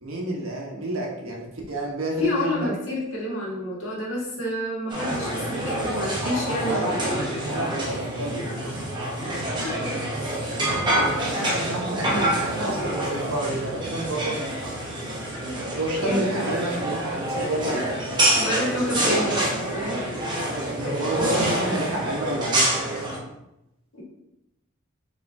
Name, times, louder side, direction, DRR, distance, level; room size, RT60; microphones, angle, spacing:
voice 1, 0.0-2.7 6.6-7.0 7.4-8.8 10.6-14.4 15.7-17.8 20.0-20.1 20.6-22.7, right 1 dB, 90° right, -2 dB, 1.1 m, -29 dB
voice 2, 2.2-6.8 9.6-9.7 16.0-16.3 18.4-20.0 23.9-24.0, left 1 dB, 90° left, -5 dB, 1.6 m, -28 dB
sound 1, 4.9-23.2, right 1 dB, 20° right, 1.0 m, -27 dB
5.2 x 3.6 x 2.7 m, 0.88 s
head